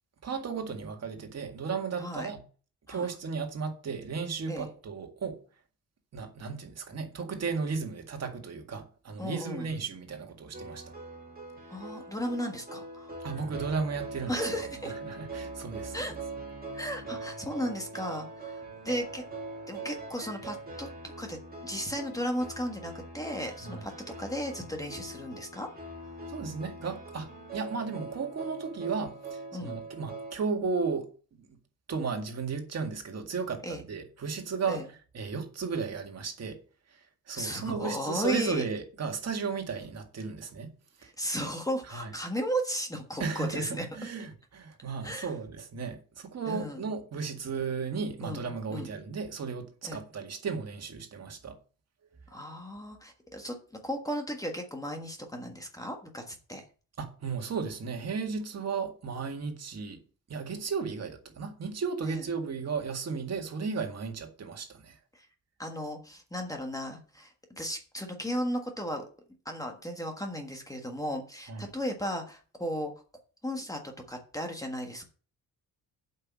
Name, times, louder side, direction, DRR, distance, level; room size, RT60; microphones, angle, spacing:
voice 1, 0.2-2.4 2.9-5.4 6.1-10.8 13.2-14.7 15.1-16.1 23.6-23.9 26.3-31.1 31.4-31.6 31.9-34.9 35.1-36.6 36.9-40.7 41.0-41.1 41.9-42.1 43.2-51.6 57.0-60.0 60.3-65.0 71.5-71.7, right 5 dB, 45° right, 2.0 m, -35 dB
voice 2, 2.0-2.3 2.9-3.1 4.5-4.7 9.2-9.7 11.7-13.2 14.3-14.9 15.9-16.1 16.7-19.2 19.7-20.9 21.2-21.4 21.6-25.7 29.5-29.8 33.6-33.8 34.7-34.8 37.3-38.6 41.0-43.9 45.0-45.3 46.5-46.8 48.2-48.4 48.7-48.9 49.8-50.0 52.3-56.6 62.0-62.2 65.1-65.3 65.6-69.0 69.4-72.9 73.4-73.8 74.1-75.1, equal, 10° left, 1.4 m, -35 dB
sound 1, 10.5-30.4, right 3 dB, 25° right, 2.7 m, -42 dB
8.1 x 5.8 x 7.4 m
wide cardioid pair, 155°, 36 cm